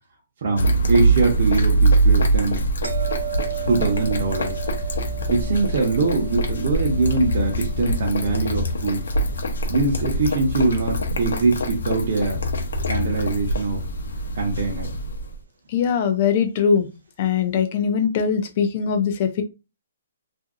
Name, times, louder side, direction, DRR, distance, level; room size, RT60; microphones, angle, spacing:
voice 1, 0.4-2.7 3.7-4.6 5.3-9.0 9.7-12.4 12.9-13.8 14.3-14.9, right 3 dB, 40° right, -1 dB, 0.8 m, -22 dB
sound 1, 0.6-15.4, right 2 dB, 80° left, 0.7 m, -23 dB
sound 2, 2.8-9.8 15.1-15.3, right 14 dB, 85° right, 0.5 m, -36 dB
voice 2, 15.7-16.9 17.2-19.4, left 7 dB, 30° left, 7 dB, 0.4 m, -21 dB
2.7 x 2.5 x 2.5 m, 0.28 s
hypercardioid pair, 175°, 0 cm